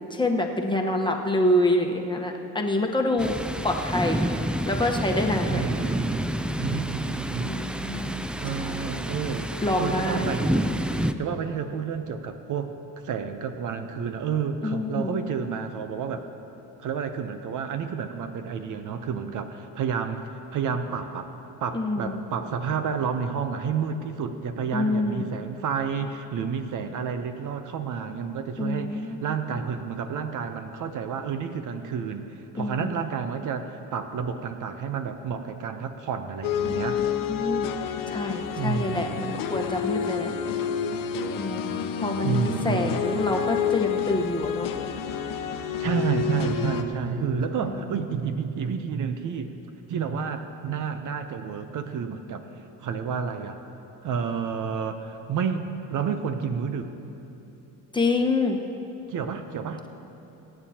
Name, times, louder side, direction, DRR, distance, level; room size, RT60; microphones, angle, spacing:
voice 1, 0.1-3.4 3.6-4.2 4.7-5.6 7.4-9.1 9.6-10.4 14.6-15.2 21.7-22.2 24.7-25.3 28.6-29.4 32.6-33.0 36.6-37.0 37.3-37.7 38.1-40.3 41.3-44.7 47.6-47.7 57.9-58.6, left 2 dB, 15° left, 2 dB, 1.1 m, -27 dB
Thunder, 3.2-11.1, right 1 dB, 5° right, 0.3 m, -29 dB
voice 2, 5.5-7.6 8.4-10.6 10.9-12.8 13.0-16.2 16.8-21.3 21.6-32.2 32.5-37.0 38.5-39.3 42.2-43.0 45.8-49.5 49.9-52.5 52.8-53.6 54.0-56.9 59.1-59.8, right 6 dB, 60° right, 8 dB, 0.8 m, -30 dB
sound 1, 36.4-46.8, left 8 dB, 65° left, 0.9 m, -29 dB
23.0 x 9.0 x 2.9 m, 2.9 s
cardioid pair, 90°, 35 cm